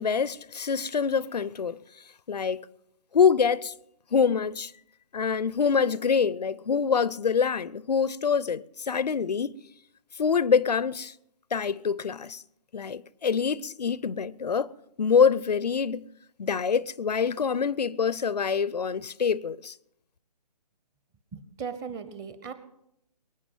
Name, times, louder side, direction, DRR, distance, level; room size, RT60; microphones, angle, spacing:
voice 1, 0.0-1.8 2.3-2.7 3.1-3.7 4.1-4.7 5.1-9.6 10.2-11.1 11.5-12.4 12.7-16.1 16.4-19.7, left 6 dB, 75° left, 0.6 m, -25 dB
voice 2, 21.3-22.5, right 6 dB, 15° right, 1.0 m, -37 dB
22.5 x 9.7 x 5.5 m
figure-of-eight pair, 145°, 21 cm